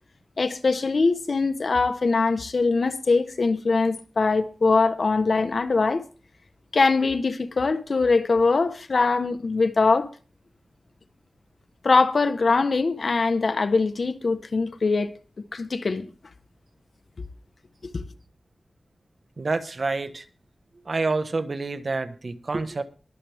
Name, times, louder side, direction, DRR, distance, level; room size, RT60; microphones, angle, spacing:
voice 1, 0.4-6.0 6.7-10.1 11.8-15.1 15.5-16.1 17.9-18.0, left 4 dB, 65° left, 1.2 m, -22 dB
voice 2, 19.4-20.2 20.8-22.8, right 3 dB, 55° right, 1.4 m, -28 dB
22.0 x 7.6 x 3.6 m
wide cardioid pair, 60°, 0 cm